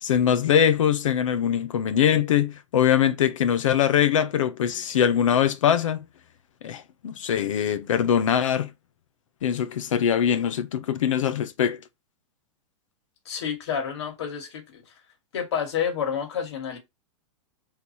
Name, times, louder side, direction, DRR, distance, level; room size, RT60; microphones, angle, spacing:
voice 1, 0.0-6.0 6.6-8.7 9.4-11.8, left 9 dB, 80° left, 1.2 m, -22 dB
voice 2, 13.3-14.9 15.3-16.8, left 7 dB, 55° left, 2.4 m, -29 dB
6.6 x 3.9 x 4.3 m
supercardioid pair, 180°, 16 cm